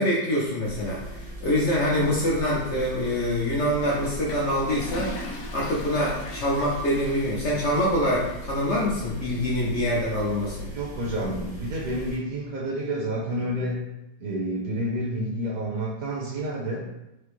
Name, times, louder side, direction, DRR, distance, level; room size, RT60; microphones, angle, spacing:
voice 1, 0.0-10.7, equal, 70° left, -5 dB, 0.6 m, -25 dB
sound 1, 0.6-12.2, equal, 10° right, 0.4 m, -39 dB
Toilet flush, 3.8-8.9, left 3 dB, 90° left, 1.5 m, -40 dB
voice 2, 10.7-13.8 14.2-16.8, right 1 dB, 60° right, -4 dB, 1.0 m, -29 dB
4.8 x 2.0 x 3.0 m, 0.93 s
omnidirectional pair, 2.0 m